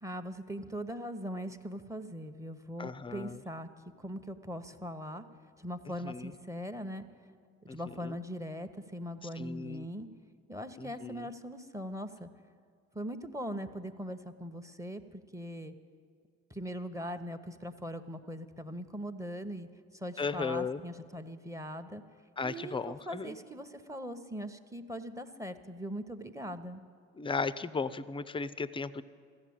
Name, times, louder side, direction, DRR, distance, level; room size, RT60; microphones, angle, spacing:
voice 1, 0.0-3.7 4.0-5.2 5.6-7.0 7.6-10.1 10.5-12.3 12.9-15.7 16.5-22.0 22.4-26.8, equal, 10° right, 9 dB, 0.8 m, -40 dB
voice 2, 2.8-3.3 6.1-6.3 7.7-7.8 9.4-9.8 10.8-11.2 20.2-20.8 22.4-23.3 27.2-29.0, left 4 dB, 15° left, 15 dB, 0.5 m, -35 dB
14.5 x 7.1 x 8.6 m, 2.1 s
hypercardioid pair, 55°, 36 cm